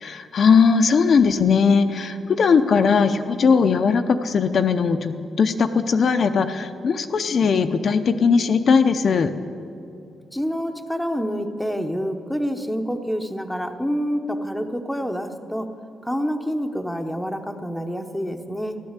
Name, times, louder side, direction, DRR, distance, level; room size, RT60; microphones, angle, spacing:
voice 1, 0.0-9.3, left 5 dB, 45° left, 7 dB, 0.6 m, -19 dB
voice 2, 10.3-15.7 16.0-18.8, equal, ahead, 5 dB, 0.8 m, -27 dB
15.0 x 12.0 x 8.1 m, 2.7 s
wide cardioid pair, 170°, 0 cm